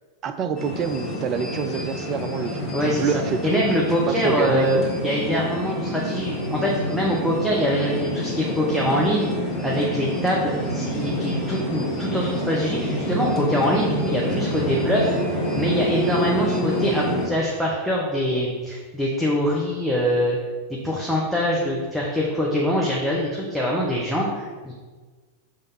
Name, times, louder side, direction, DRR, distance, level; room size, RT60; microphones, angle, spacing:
voice 1, 0.2-3.6 4.1-4.8, right 6 dB, 35° right, 9 dB, 0.5 m, -27 dB
sound 1, 0.6-17.3, equal, 30° left, 1.9 m, -27 dB
voice 2, 2.7-4.8 5.0-9.3 9.6-20.4 20.7-24.7, equal, ahead, -4 dB, 1.0 m, -24 dB
6.4 x 3.4 x 5.5 m, 1.4 s
figure-of-eight pair, 90°, 0 cm